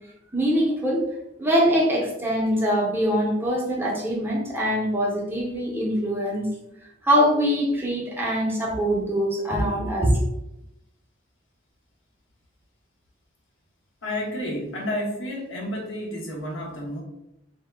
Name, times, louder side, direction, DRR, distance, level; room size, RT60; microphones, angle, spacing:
voice 1, 0.3-1.1 1.4-6.5 7.0-10.2, equal, 10° right, -3 dB, 0.5 m, -23 dB
voice 2, 14.0-17.0, left 1 dB, 75° left, -2 dB, 0.8 m, -30 dB
2.1 x 2.0 x 3.2 m, 0.85 s
head